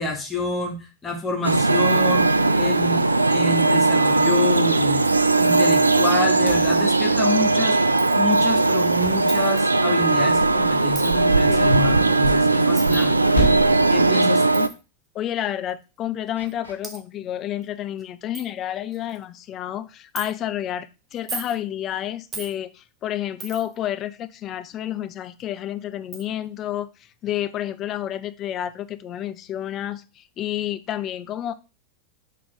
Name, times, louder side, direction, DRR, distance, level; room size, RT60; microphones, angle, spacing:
voice 1, 0.0-2.3 2.5-5.0 5.4-7.8 8.1-13.3 13.9-14.7, left 3 dB, 15° left, 1.3 m, -28 dB
sound 1, 1.4-14.7, right 3 dB, 80° right, 0.3 m, -19 dB
sound 2, 6.5-7.7 9.0-10.2 12.0-13.0 13.3-14.0 16.4-16.7, right 1 dB, 90° left, 1.1 m, -29 dB
Coin (dropping), 8.0-8.2 9.3-9.6 10.9-11.2 12.8-13.1 14.5-14.7 15.7-15.8 16.5-16.6 16.8-17.0 17.6-17.7 18.0-18.1 18.3-18.5 18.9-19.2 20.2-20.3 21.1-21.6 22.3-22.5 23.4-23.8 25.4-25.5 26.1-26.2, right 4 dB, 25° right, 1.2 m, -36 dB
voice 2, 11.5-11.8 15.1-31.5, left 11 dB, 30° left, 0.5 m, -30 dB
6.5 x 4.1 x 3.8 m
figure-of-eight pair, 90°, 0 cm